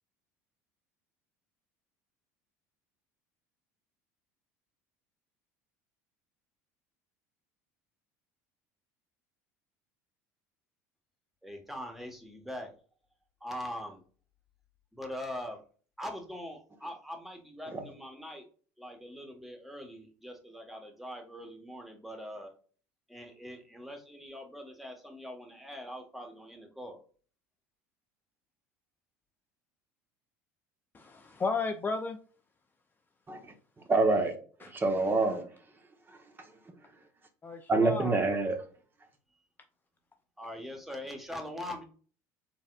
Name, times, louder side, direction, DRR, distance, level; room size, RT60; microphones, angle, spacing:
voice 1, 11.4-12.7 13.4-14.0 14.9-15.6 16.0-18.4 18.8-22.5 23.1-27.0 40.4-41.8, equal, ahead, 3 dB, 1.3 m, -42 dB
voice 2, 30.9-32.2 34.6-34.7 37.4-38.2, left 4 dB, 25° left, 5 dB, 0.5 m, -33 dB
voice 3, 33.9-34.3 34.7-35.4 37.7-38.6, right 3 dB, 25° right, 5 dB, 1.1 m, -26 dB
4.0 x 3.8 x 2.4 m, 0.41 s
hypercardioid pair, 75°, 8 cm